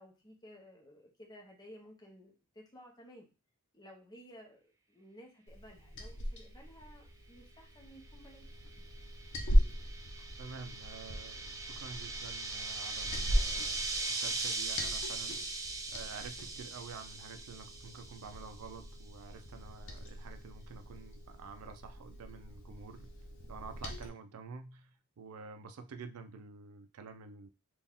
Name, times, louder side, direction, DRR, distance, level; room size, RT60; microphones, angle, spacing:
voice 1, 0.0-3.3 3.7-8.4, equal, 20° left, 0 dB, 0.9 m, -55 dB
Liquid, 5.5-24.1, equal, 60° left, 0.8 m, -38 dB
sound 1, 8.7-18.5, right 3 dB, 15° right, 0.4 m, -39 dB
voice 2, 10.4-13.8 14.1-23.1 23.5-27.5, right 5 dB, 85° right, 8 dB, 0.4 m, -49 dB
4.0 x 2.3 x 3.5 m, 0.31 s
head